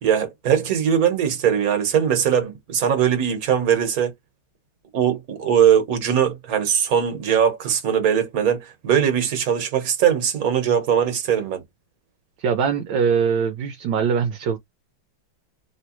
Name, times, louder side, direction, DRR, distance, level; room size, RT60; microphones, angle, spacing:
voice 1, 0.0-4.1 4.9-11.6, right 8 dB, 50° right, 1.4 m, -20 dB
voice 2, 12.4-14.6, right 6 dB, 75° right, 1.2 m, -22 dB
3.2 x 3.1 x 3.0 m
omnidirectional pair, 2.2 m